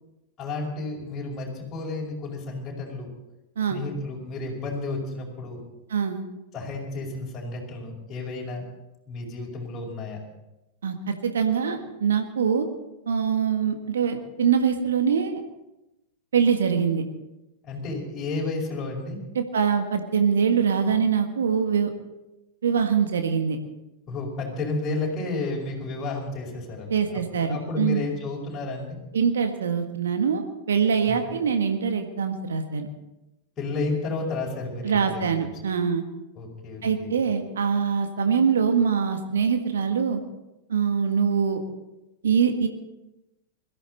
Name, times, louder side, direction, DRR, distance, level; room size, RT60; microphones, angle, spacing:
voice 1, 0.4-3.1 3.7-5.6 6.5-8.6 9.1-10.2 17.7-19.2 24.1-27.0 27.5-29.0 31.1-31.2 33.6-35.5 36.4-37.1, left 3 dB, 25° left, -3 dB, 5.4 m, -31 dB
voice 2, 5.9-6.2 10.8-12.7 13.1-15.4 16.3-17.0 19.3-21.9 22.6-23.6 26.9-28.0 29.1-32.9 34.8-36.0 36.8-40.2 40.7-41.6 42.2-42.7, right 6 dB, 70° right, 6 dB, 1.7 m, -23 dB
21.5 x 14.0 x 4.1 m, 0.95 s
figure-of-eight pair, 95°, 0 cm